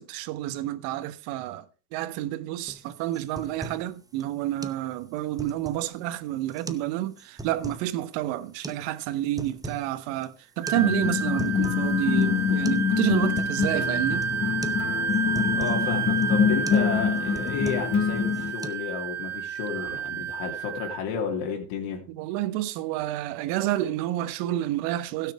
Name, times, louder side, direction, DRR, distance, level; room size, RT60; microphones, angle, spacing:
voice 1, 0.0-14.3 19.7-19.9 22.1-25.3, right 14 dB, 85° right, 1.3 m, -29 dB
sound 1, 2.7-2.8 3.1-3.9 4.2-4.3 4.6-4.8 5.2-5.9 6.5-6.9 7.2-7.9 8.6-8.8 9.2-9.9 10.2-10.3 10.7-10.8 11.2-11.9 12.2-12.3 12.7-12.9 13.1-13.8 14.2-14.4 14.6-14.8 15.1-15.8 16.2-16.4 16.7-16.9 17.2-18.0 18.3-18.7, right 2 dB, 10° right, 0.7 m, -39 dB
Wind instrument woodwind instrument, 10.6-21.0, right 6 dB, 35° right, 1.1 m, -30 dB
sound 2, 10.7-18.5, left 7 dB, 30° left, 0.8 m, -25 dB
voice 2, 15.5-22.0, left 6 dB, 80° left, 2.9 m, -32 dB
16.0 x 6.5 x 4.8 m
cardioid pair, 135°, 49 cm